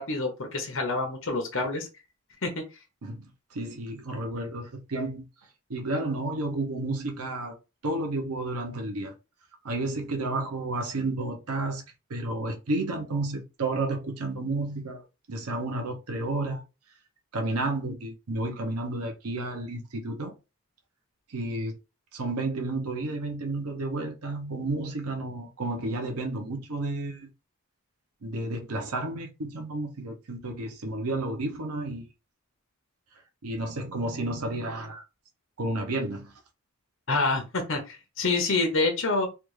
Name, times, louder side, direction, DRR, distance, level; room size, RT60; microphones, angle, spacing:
voice 1, 0.0-1.9 2.4-2.6 37.1-39.3, left 3 dB, 60° left, 0.9 m, -27 dB
voice 2, 3.0-5.2 5.7-7.6 7.8-9.1 9.6-11.8 12.1-16.6 17.3-20.3 21.3-21.7 22.1-27.3 28.2-32.1 33.4-35.0 35.6-36.3, right 2 dB, 85° right, 0.8 m, -31 dB
3.3 x 2.4 x 3.1 m
head